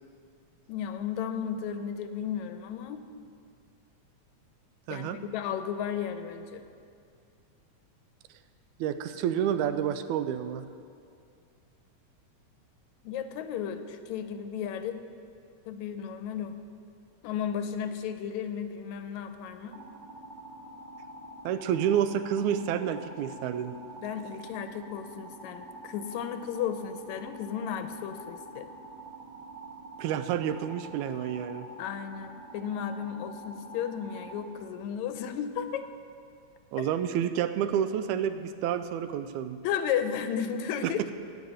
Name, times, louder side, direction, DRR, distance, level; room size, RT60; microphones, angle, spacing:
voice 1, 0.7-3.0 4.9-6.6 13.0-15.0 15.7-16.5 17.2-19.8 24.0-28.7 31.8-35.8 39.6-41.0, left 8 dB, 85° left, 9 dB, 2.0 m, -34 dB
voice 2, 4.9-5.2 8.8-10.7 21.4-23.7 30.0-31.7 36.7-39.6 40.8-41.1, right 9 dB, 90° right, 10 dB, 2.1 m, -29 dB
sound 1, 19.7-34.5, right 1 dB, 45° right, 1.1 m, -47 dB
15.5 x 5.5 x 9.1 m, 2.4 s
omnidirectional pair, 3.3 m